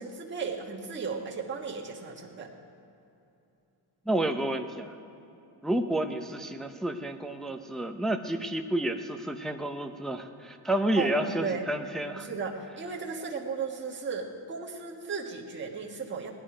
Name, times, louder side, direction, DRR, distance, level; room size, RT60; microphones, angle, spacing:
voice 1, 0.0-2.5 11.0-11.1 11.4-11.6 12.1-16.3, right 5 dB, 25° right, -2 dB, 1.6 m, -35 dB
voice 2, 4.1-5.0 5.6-12.3, right 1 dB, ahead, 5 dB, 0.5 m, -30 dB
17.5 x 10.5 x 5.0 m, 2.8 s
cardioid pair, 120°, 44 cm